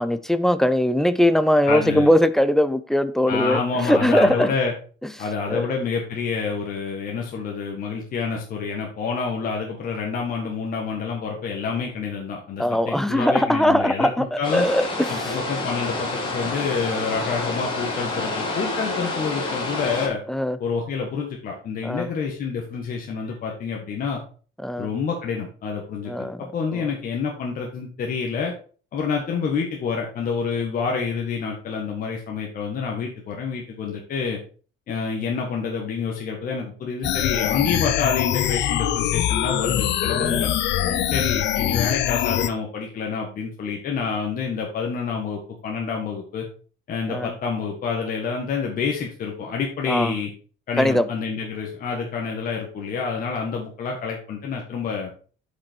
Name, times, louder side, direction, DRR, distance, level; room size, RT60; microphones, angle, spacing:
voice 1, 0.0-4.5 5.5-5.7 12.6-15.4 20.3-20.6 21.8-22.1 24.6-24.9 26.1-26.4 26.7-26.8 40.2-40.5 40.8-41.1 47.1-47.3 49.9-50.1 50.8-51.1, left 1 dB, ahead, 0.4 m, -21 dB
voice 2, 1.7-2.1 3.3-4.7 5.2-14.7 15.1-20.2 20.6-24.2 24.8-28.5 28.9-34.4 34.9-40.5 41.1-46.5 46.9-50.3 50.7-55.1, left 5 dB, 40° left, 1.5 m, -28 dB
sound 1, 14.4-20.1, left 2 dB, 25° left, 2.6 m, -28 dB
sound 2, 37.0-42.5, left 12 dB, 55° left, 0.6 m, -23 dB
8.5 x 5.5 x 4.4 m
cardioid pair, 165°, 21 cm